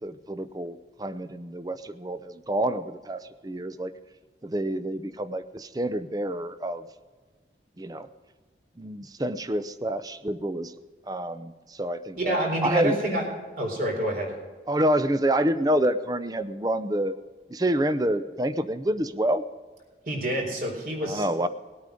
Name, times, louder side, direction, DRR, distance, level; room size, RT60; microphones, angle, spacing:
voice 1, 0.0-3.9 4.4-6.9 7.8-8.1 8.8-10.7 11.1-13.0 14.7-17.1 17.5-19.4 21.0-21.5, right 1 dB, 20° right, 12 dB, 0.6 m, -28 dB
voice 2, 12.2-13.2 13.6-14.4 20.1-21.3, right 1 dB, 50° right, 1 dB, 4.0 m, -27 dB
19.5 x 8.8 x 5.1 m, 1.4 s
head